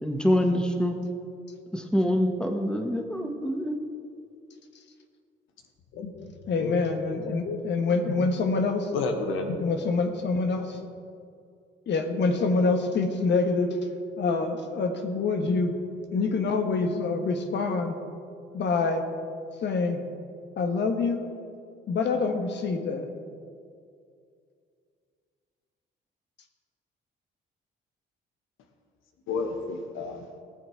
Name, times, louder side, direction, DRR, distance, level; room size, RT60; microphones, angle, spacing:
voice 1, 0.0-0.9 1.7-3.7, equal, 5° left, 4 dB, 1.3 m, -25 dB
voice 2, 5.9-6.3 6.6-6.9 7.4-7.6 8.9-9.6 29.3-30.2, left 4 dB, 90° left, 4 dB, 1.3 m, -30 dB
voice 3, 6.5-8.9 9.6-10.9 11.9-13.8 14.2-15.7 16.1-18.0 18.5-19.1 19.6-20.0 20.6-21.3 21.9-23.1, left 4 dB, 65° left, 6 dB, 1.3 m, -26 dB
18.5 x 7.3 x 4.6 m, 2.4 s
cardioid pair, 90°, 20 cm